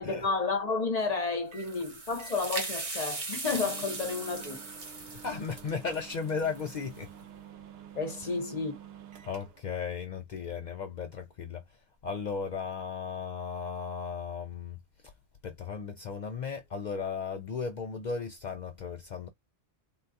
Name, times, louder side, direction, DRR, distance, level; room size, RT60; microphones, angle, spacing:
voice 1, 0.0-4.6 7.9-8.8, left 4 dB, 40° left, 1.0 m, -31 dB
sound 1, 1.5-7.0, right 3 dB, 35° right, 0.9 m, -39 dB
sound 2, 1.5-1.8 2.2-2.8 3.1-3.2 3.4-9.7, right 8 dB, 70° right, 0.8 m, -49 dB
voice 2, 5.2-7.1 8.2-8.4 9.2-11.8 12.0-14.8 15.4-19.3, left 5 dB, 55° left, 0.5 m, -36 dB
3.7 x 2.3 x 2.7 m
omnidirectional pair, 1.1 m